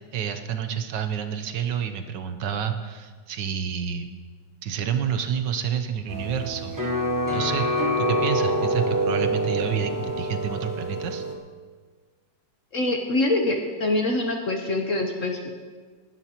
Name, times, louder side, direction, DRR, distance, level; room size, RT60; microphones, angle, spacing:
voice 1, 0.1-4.1 4.6-6.8 7.3-7.7 8.0-11.2, right 8 dB, 70° right, 8 dB, 1.3 m, -29 dB
sound 1, 6.1-11.4, equal, 20° right, 0.5 m, -26 dB
voice 2, 12.7-15.6, left 2 dB, 50° left, 3 dB, 1.1 m, -25 dB
19.0 x 11.5 x 2.9 m, 1.5 s
omnidirectional pair, 2.1 m